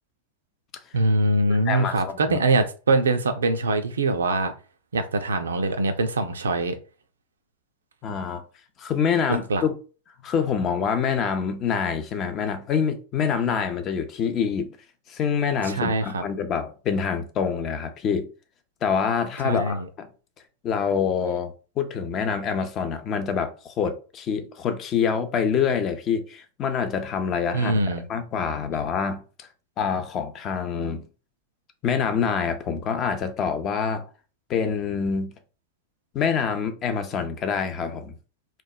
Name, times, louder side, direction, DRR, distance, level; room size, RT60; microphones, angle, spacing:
voice 1, 0.9-4.5 4.9-6.8 9.3-9.6 15.6-16.2 19.4-19.9 27.5-28.0, right 2 dB, 70° right, 0.3 m, -23 dB
voice 2, 1.7-2.4 8.0-8.4 8.8-9.7 10.2-14.7 15.1-18.3 18.8-20.1 20.6-27.7 28.1-29.5 29.8-31.0 31.8-34.0 34.5-35.3 36.1-38.1, left 6 dB, 30° left, 0.4 m, -26 dB
3.0 x 2.1 x 2.3 m
figure-of-eight pair, 90°, 0 cm